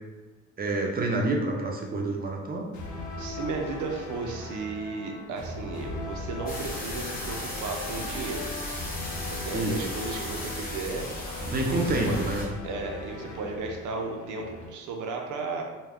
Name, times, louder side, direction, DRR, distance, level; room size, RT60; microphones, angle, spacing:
voice 1, 0.6-2.7 9.5-9.8 11.5-12.5, right 2 dB, 30° right, 0 dB, 0.6 m, -28 dB
sound 1, 2.7-14.7, left 2 dB, 80° left, 0.6 m, -39 dB
voice 2, 3.2-8.5 9.3-11.1 11.7-12.2 12.6-15.6, right 4 dB, 80° right, 1 dB, 0.6 m, -34 dB
sound 2, 6.5-12.5, left 1 dB, 30° left, 0.9 m, -36 dB
2.3 x 2.2 x 3.4 m, 1.3 s
cardioid pair, 90°, 30 cm